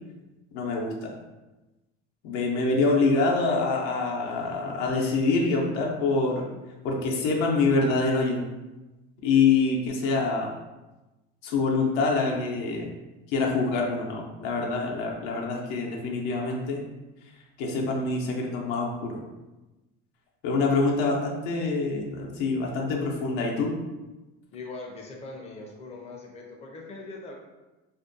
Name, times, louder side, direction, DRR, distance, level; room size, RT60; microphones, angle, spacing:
voice 1, 0.5-1.1 2.2-6.5 6.8-8.4 9.2-10.5 11.4-12.9 13.3-16.8 17.6-19.2 20.4-23.8, left 3 dB, 80° left, -1 dB, 0.6 m, -25 dB
voice 2, 24.5-27.3, left 3 dB, 20° left, 0 dB, 0.5 m, -41 dB
2.5 x 2.2 x 2.5 m, 1.1 s
supercardioid pair, 100°, 31 cm